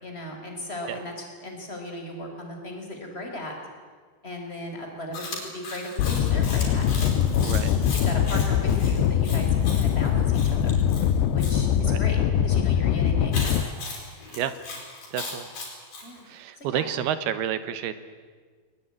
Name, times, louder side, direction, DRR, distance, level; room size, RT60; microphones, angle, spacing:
voice 1, 0.0-3.5 4.2-7.3 7.9-9.5 9.7-10.7 11.3-13.7 16.0-16.2 16.6-16.8, left 1 dB, 15° left, 2 dB, 4.2 m, -36 dB
Chewing mastication, 5.1-11.6 13.3-16.1, left 3 dB, 50° left, 6.8 m, -37 dB
sound 1, 6.0-13.6, left 9 dB, 85° left, 3.1 m, -22 dB
voice 2, 7.4-7.7 11.8-12.0 14.3-14.6 15.1-15.5 16.3-18.0, right 10 dB, 75° right, 13 dB, 2.9 m, -30 dB
21.0 x 20.0 x 9.9 m, 1.5 s
omnidirectional pair, 4.9 m